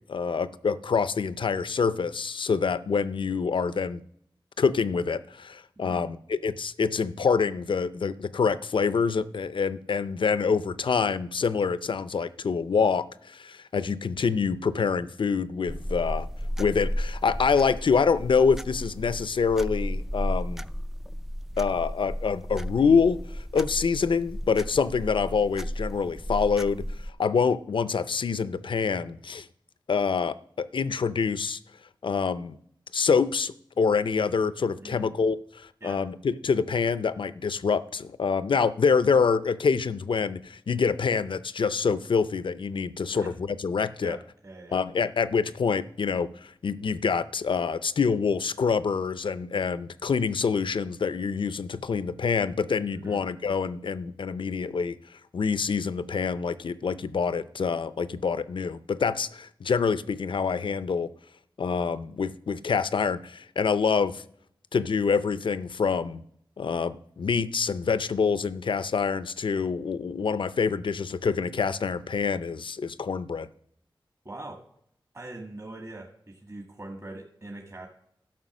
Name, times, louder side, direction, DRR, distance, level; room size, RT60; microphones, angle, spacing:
voice 1, 0.1-4.0 4.6-16.3 16.6-20.6 21.6-26.8 27.2-29.5 29.9-31.6 32.0-32.6 32.9-44.2 44.7-55.0 55.3-61.1 61.6-64.2 64.7-66.2 66.6-73.5, left 5 dB, 70° left, 15 dB, 0.5 m, -26 dB
sound 1, 15.7-27.1, equal, 5° right, 0.4 m, -34 dB
voice 2, 34.8-35.2 35.8-36.0 43.1-43.3 44.0-44.8 52.9-53.2 74.2-74.6 75.1-77.9, right 2 dB, 35° right, 1 dB, 1.7 m, -42 dB
12.0 x 5.6 x 6.1 m, 0.69 s
wide cardioid pair, 65°, 9 cm